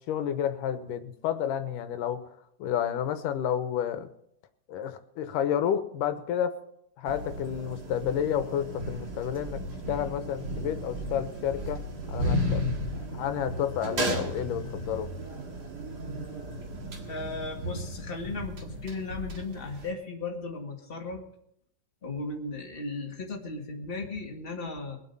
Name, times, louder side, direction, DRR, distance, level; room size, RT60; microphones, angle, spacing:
voice 1, 0.1-2.2 2.6-4.1 4.7-6.5 7.0-9.6 9.9-11.8 12.1-12.6 13.1-15.1, left 9 dB, 85° left, 10 dB, 2.5 m, -30 dB
sound 1, 7.0-19.9, equal, 40° right, 1.9 m, -34 dB
voice 2, 17.1-21.2 22.0-25.0, left 3 dB, 25° left, 1 dB, 1.5 m, -36 dB
22.0 x 8.3 x 5.5 m, 0.74 s
omnidirectional pair, 3.7 m